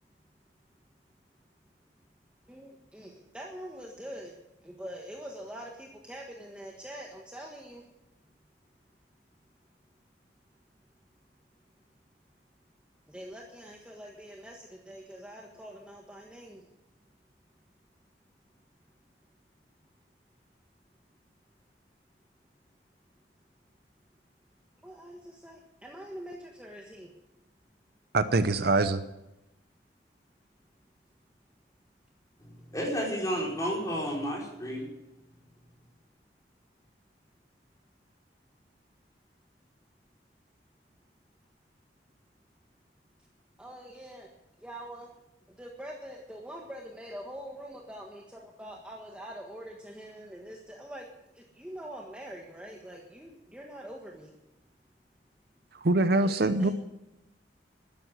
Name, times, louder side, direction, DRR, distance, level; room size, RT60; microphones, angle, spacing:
voice 1, 2.5-4.3 4.6-7.8 13.1-16.7 24.8-27.1 43.6-44.3 44.6-45.1 45.6-51.1 51.3-54.4 56.1-56.7, equal, 5° right, -1 dB, 1.4 m, -44 dB
voice 2, 28.1-29.0 55.8-56.7, right 2 dB, 60° right, 11 dB, 0.8 m, -24 dB
voice 3, 32.4-34.9, equal, 20° left, -3 dB, 4.9 m, -32 dB
12.5 x 10.5 x 7.8 m, 0.89 s
head